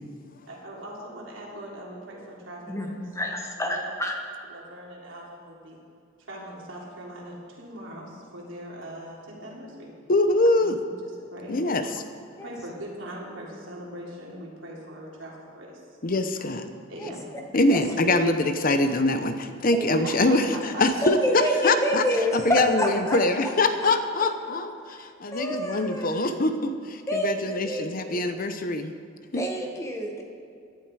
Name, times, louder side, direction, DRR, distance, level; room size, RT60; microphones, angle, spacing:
voice 1, 0.5-3.0 3.3-3.4 3.7-3.8 4.5-5.8 6.3-9.9 10.6-11.8 12.4-16.0 16.9-17.4 19.7-21.1 26.0-26.3, right 1 dB, 70° right, -4 dB, 3.7 m, -41 dB
voice 2, 2.7-4.2 12.4-12.5 17.0-17.1 17.7-17.8 19.7-20.0 20.5-20.6 21.0-23.5 25.3-26.3 27.1-28.3 29.3-30.2, equal, 15° left, 2 dB, 1.5 m, -28 dB
voice 3, 10.1-10.8 11.5-11.9 16.0-16.7 17.5-20.4 20.8-22.0 22.3-28.9 29.3-29.4, left 2 dB, 45° left, 8 dB, 0.8 m, -24 dB
17.0 x 11.5 x 4.8 m, 2.4 s
head